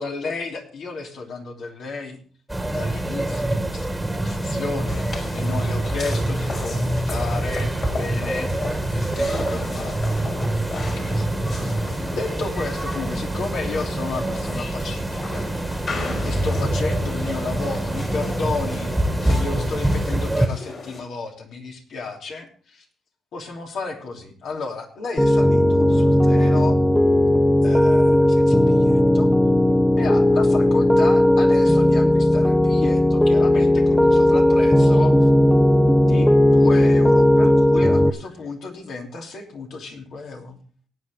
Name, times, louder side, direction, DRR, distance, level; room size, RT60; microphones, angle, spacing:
voice 1, 0.0-2.2 2.6-5.0 5.3-8.5 8.9-10.1 10.5-11.3 11.6-11.7 12.1-15.5 16.2-18.9 19.2-22.8 23.3-26.8 27.6-29.3 29.9-35.3 36.1-40.6, left 4 dB, 70° left, 1 dB, 3.1 m, -32 dB
sound 1, 2.5-20.5, right 1 dB, 10° right, 1.7 m, -25 dB
sound 2, 4.9-21.0, left 3 dB, 50° left, 4.1 m, -36 dB
Piano, 25.2-38.1, left 1 dB, 10° left, 0.9 m, -16 dB
18.5 x 8.8 x 3.6 m, 0.43 s
cardioid pair, 90°, 0 cm